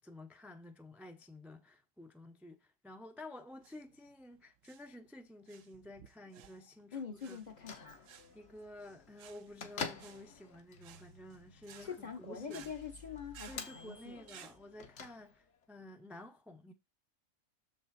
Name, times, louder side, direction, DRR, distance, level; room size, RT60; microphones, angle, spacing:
voice 1, 0.0-7.4 8.3-12.7 13.5-16.7, left 1 dB, ahead, 0.4 m, -52 dB
sound 1, 3.5-14.6, right 9 dB, 75° right, 1.0 m, -58 dB
voice 2, 6.9-8.0 11.8-14.2, left 6 dB, 40° left, 0.8 m, -44 dB
Bell / Microwave oven, 7.4-15.7, left 5 dB, 65° left, 1.3 m, -49 dB
6.7 x 5.1 x 4.0 m
omnidirectional pair, 1.4 m